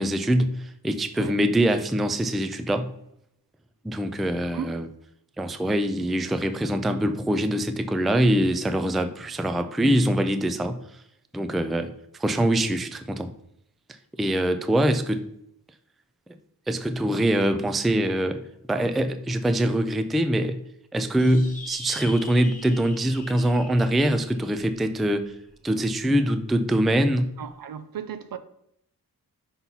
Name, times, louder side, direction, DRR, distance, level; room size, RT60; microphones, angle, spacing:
voice 1, 0.0-2.9 3.8-4.9 5.4-10.8 11.3-11.9 12.2-13.3 14.2-15.3 16.7-20.6 20.9-25.3 25.6-27.3, right 1 dB, ahead, 0.3 m, -23 dB
sound 1, 21.2-25.9, left 3 dB, 20° left, 1.1 m, -44 dB
voice 2, 27.4-28.4, right 7 dB, 65° right, 0.6 m, -35 dB
5.8 x 5.6 x 4.0 m
wide cardioid pair, 165°, 37 cm